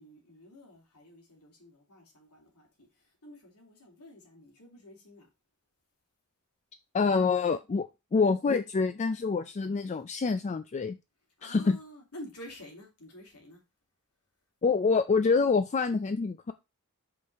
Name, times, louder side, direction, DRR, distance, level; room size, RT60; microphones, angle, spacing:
voice 1, 0.0-2.9 3.2-5.3 11.4-13.6, left 1 dB, 90° left, 3.1 m, -49 dB
voice 2, 6.9-11.0 11.4-11.8 14.6-16.5, left 4 dB, 30° left, 0.4 m, -26 dB
5.4 x 5.3 x 4.5 m
head